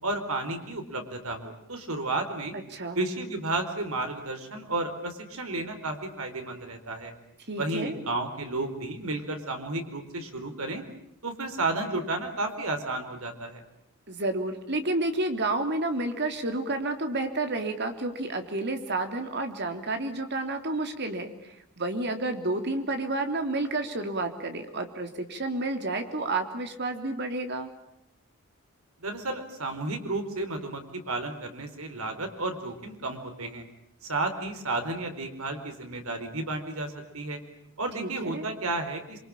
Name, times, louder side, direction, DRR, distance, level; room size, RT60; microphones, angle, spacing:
voice 1, 0.0-2.5 2.9-7.1 7.6-10.8 11.2-13.6 29.0-33.6 34.0-37.4 37.8-39.2, right 2 dB, 75° right, 6 dB, 4.5 m, -32 dB
voice 2, 7.5-8.0 14.1-27.7 38.0-38.5, right 2 dB, 50° right, 6 dB, 3.3 m, -30 dB
27.5 x 24.5 x 8.9 m, 0.76 s
head